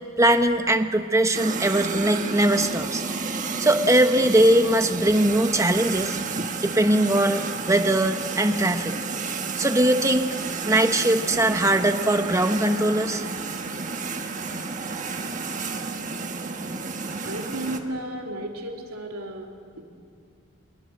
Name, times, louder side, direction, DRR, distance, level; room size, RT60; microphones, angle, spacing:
voice 1, 0.2-3.0 3.6-6.2 6.6-9.0 9.6-10.4 10.6-13.2, right 1 dB, 15° right, 7 dB, 1.0 m, -21 dB
sound 1, 1.3-17.8, right 4 dB, 35° right, 1.3 m, -31 dB
voice 2, 17.2-19.8, right 1 dB, 85° right, 1 dB, 3.2 m, -33 dB
23.5 x 23.0 x 7.8 m, 2.2 s
head